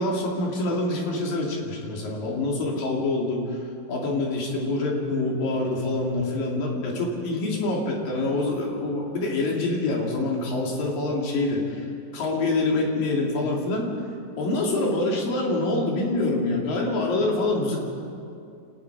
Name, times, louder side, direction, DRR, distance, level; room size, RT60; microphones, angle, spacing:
voice 1, 0.0-11.9 12.1-13.9 14.4-17.8, left 2 dB, 75° left, -1 dB, 4.4 m, -26 dB
27.5 x 19.5 x 4.8 m, 2.5 s
omnidirectional pair, 4.0 m